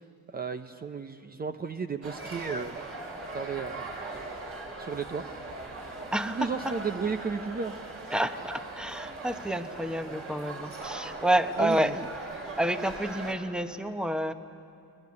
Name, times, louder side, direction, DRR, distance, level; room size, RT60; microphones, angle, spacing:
voice 1, 0.3-2.8 3.3-3.9 4.8-5.2 6.2-7.7 11.6-11.9, right 5 dB, 30° right, 8 dB, 0.7 m, -33 dB
sound 1, 2.0-13.3, right 2 dB, 50° right, 4.9 m, -40 dB
voice 2, 6.1-6.7 8.1-12.1 12.6-14.3, right 1 dB, 5° right, 9 dB, 1.1 m, -29 dB
21.5 x 21.0 x 9.6 m, 2.5 s
cardioid pair, 90°, 30 cm